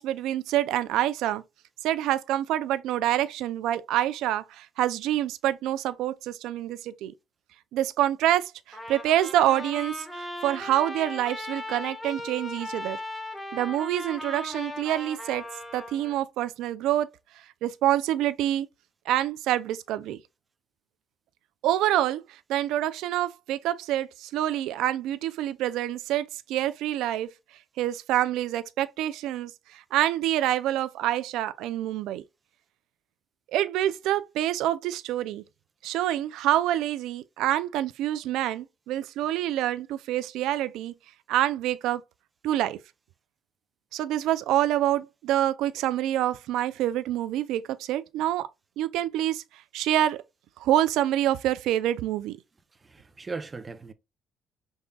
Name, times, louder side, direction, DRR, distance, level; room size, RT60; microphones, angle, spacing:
voice 1, 0.0-1.4 1.8-7.1 7.7-13.0 13.5-15.4 15.7-17.1 17.6-18.7 19.1-20.2 21.6-27.3 27.8-32.2 33.5-35.4 35.8-40.9 41.3-42.0 42.4-42.8 43.9-48.5 48.8-49.4 49.7-50.2 50.6-52.4, right 13 dB, 80° right, 0.3 m, -26 dB
Trumpet, 8.7-16.2, left 1 dB, ahead, 1.3 m, -38 dB
voice 2, 52.8-53.9, right 4 dB, 25° right, 0.5 m, -38 dB
5.3 x 3.5 x 2.3 m
cardioid pair, 110°, 0 cm